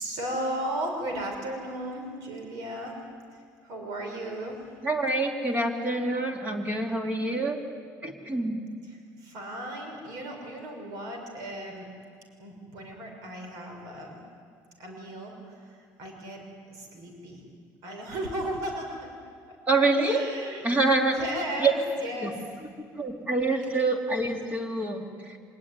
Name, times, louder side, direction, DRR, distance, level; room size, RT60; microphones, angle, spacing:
voice 1, 0.0-3.0 3.3-4.7 8.8-11.9 12.4-14.2 14.8-17.5 17.8-19.2 19.5-19.6 20.0-20.7 21.0-22.6, right 1 dB, 70° right, 3 dB, 5.9 m, -36 dB
voice 2, 4.8-7.6 8.0-8.6 19.7-20.2 20.6-21.1 21.6-21.7 22.2-22.3 23.0-25.4, right 3 dB, 25° right, 2 dB, 2.9 m, -26 dB
25.5 x 20.0 x 9.8 m, 2.2 s
cardioid pair, 155°, 7 cm